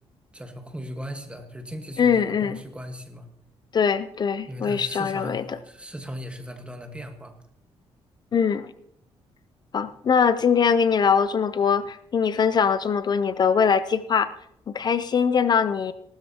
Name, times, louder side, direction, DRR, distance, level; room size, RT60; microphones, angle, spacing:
voice 1, 0.3-3.3 4.5-7.4, equal, 10° right, 5 dB, 1.4 m, -38 dB
voice 2, 2.0-2.6 3.7-5.6 8.3-8.7 9.7-14.3 14.7-15.9, left 6 dB, 40° left, 14 dB, 0.4 m, -22 dB
18.5 x 12.5 x 2.8 m, 0.75 s
cardioid pair, 130°, 11 cm